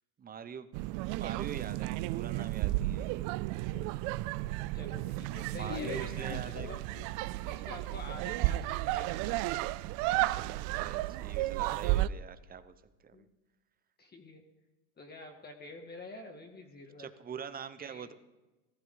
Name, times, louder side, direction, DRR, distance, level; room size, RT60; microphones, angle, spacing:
voice 1, 0.2-0.7 1.1-3.1 5.5-6.7 10.3-12.8 13.0-13.3 17.0-18.1, right 7 dB, 20° right, 12 dB, 0.8 m, -44 dB
sound 1, 0.7-12.1, right 17 dB, 45° right, 0.5 m, -33 dB
Laughter, 3.7-7.4, left 11 dB, 55° left, 1.0 m, -46 dB
voice 2, 4.7-6.8 7.5-9.4 13.1-13.3 14.0-14.4 15.0-17.1 17.8-18.1, left 2 dB, 20° left, 3 dB, 1.7 m, -47 dB
15.5 x 14.5 x 3.9 m, 1.1 s
supercardioid pair, 115°, 45 cm